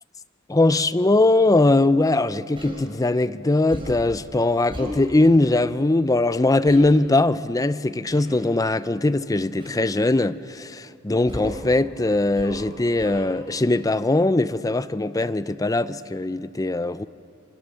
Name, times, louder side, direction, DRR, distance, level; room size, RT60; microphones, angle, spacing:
voice 1, 0.5-17.0, left 2 dB, 15° left, 0.5 m, -21 dB
Human voice, 2.6-2.8 3.7-4.1 4.7-5.0 6.7-6.9 8.1-8.4 9.6-9.9 11.3-11.7 12.3-12.7 13.0-13.3, equal, 25° right, 5.1 m, -35 dB
28.0 x 25.5 x 7.0 m
head